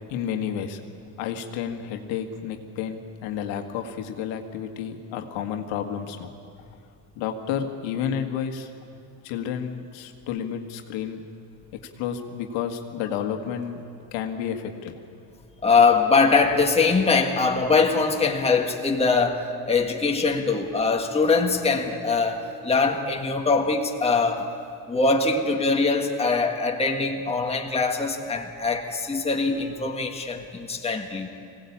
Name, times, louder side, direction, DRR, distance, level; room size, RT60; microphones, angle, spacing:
voice 1, 0.1-0.8 1.2-6.3 7.1-8.7 9.2-11.2 12.0-13.8 14.1-14.9, left 8 dB, 75° left, 5 dB, 1.8 m, -31 dB
voice 2, 15.6-24.5 24.9-31.3, left 4 dB, 15° left, 2 dB, 1.8 m, -22 dB
21.0 x 17.5 x 8.6 m, 2.6 s
supercardioid pair, 110°, 46 cm